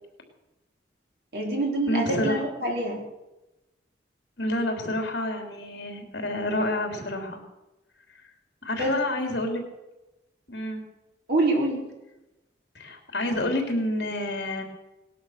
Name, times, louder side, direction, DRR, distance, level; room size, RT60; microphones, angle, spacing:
voice 1, 1.3-3.0 8.8-8.9 11.3-11.8, right 2 dB, 55° right, 0 dB, 4.0 m, -25 dB
voice 2, 1.9-2.4 4.4-7.4 8.6-9.6 10.5-10.8 12.8-14.6, left 1 dB, 60° left, 3 dB, 3.4 m, -28 dB
19.0 x 11.5 x 6.6 m, 0.99 s
head